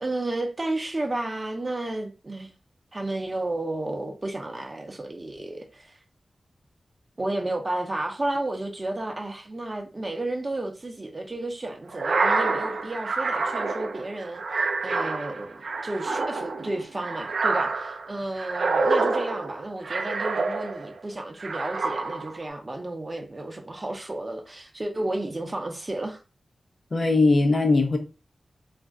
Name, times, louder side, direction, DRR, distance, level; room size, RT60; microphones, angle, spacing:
voice 1, 0.0-2.5 2.9-6.0 7.2-26.2, right 2 dB, 40° right, 0.6 m, -32 dB
sound 1, 11.9-21.0 21.4-22.4, right 3 dB, 75° right, 0.3 m, -27 dB
voice 2, 26.9-28.0, left 3 dB, 55° left, 0.7 m, -20 dB
2.4 x 2.1 x 3.6 m
cardioid pair, 40°, 0 cm